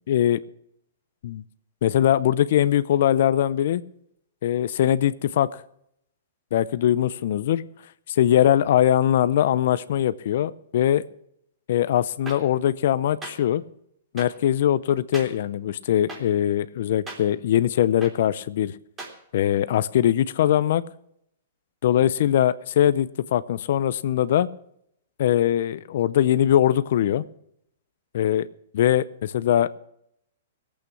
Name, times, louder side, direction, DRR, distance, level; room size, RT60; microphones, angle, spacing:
voice 1, 0.1-0.4 1.2-1.4 1.8-3.8 4.4-5.6 6.5-7.6 8.2-11.0 11.7-13.6 14.1-18.7 19.3-20.8 21.8-24.5 25.2-27.2 28.1-28.5 28.7-29.8, left 11 dB, 60° left, 16 dB, 0.6 m, -21 dB
sound 1, 12.3-12.4 13.2-13.3 14.2-14.3 15.1-15.3 16.1-16.2 17.1-17.2 18.0-18.1 19.0-19.1, right 3 dB, 20° right, 3.4 m, -36 dB
17.0 x 8.5 x 5.9 m, 0.74 s
hypercardioid pair, 130°, 0 cm